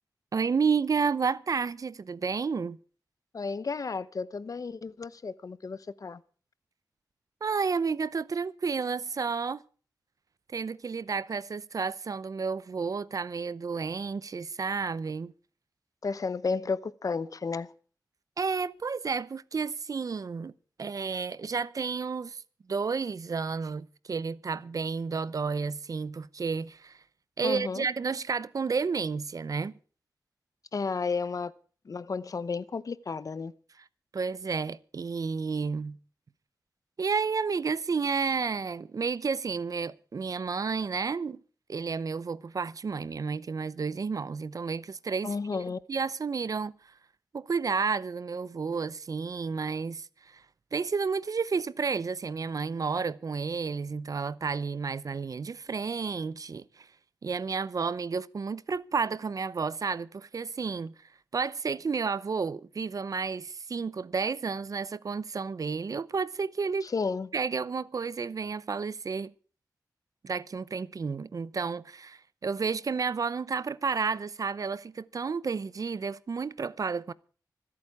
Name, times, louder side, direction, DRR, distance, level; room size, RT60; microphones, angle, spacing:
voice 1, 0.3-2.8 7.4-9.6 10.5-15.3 18.4-20.5 20.8-22.4 22.7-27.0 27.4-29.7 34.1-36.0 37.0-41.4 41.7-46.9 47.3-50.4 50.7-56.9 57.2-60.9 61.3-66.9 67.3-69.3 70.2-77.1, right 5 dB, 55° right, 0.7 m, -31 dB
voice 2, 3.3-6.2 16.0-17.7 27.4-27.9 30.7-31.5 31.9-33.5 45.2-45.8 66.8-67.3, left 4 dB, 55° left, 0.8 m, -32 dB
25.5 x 8.6 x 4.7 m
wide cardioid pair, 120°, 7 cm